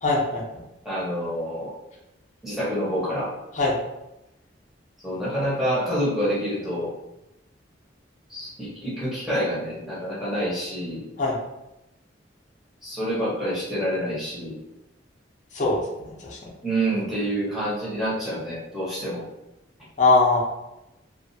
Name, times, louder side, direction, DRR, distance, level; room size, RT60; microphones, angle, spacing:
voice 1, 0.0-0.4 3.5-3.8 11.2-11.4 15.5-16.4 20.0-20.4, left 3 dB, 40° left, -3 dB, 0.6 m, -21 dB
voice 2, 0.8-1.7 2.4-3.3 5.0-6.9 8.3-11.0 12.8-14.6 16.6-19.2, equal, ahead, -9 dB, 0.9 m, -27 dB
2.5 x 2.4 x 2.6 m, 0.93 s
head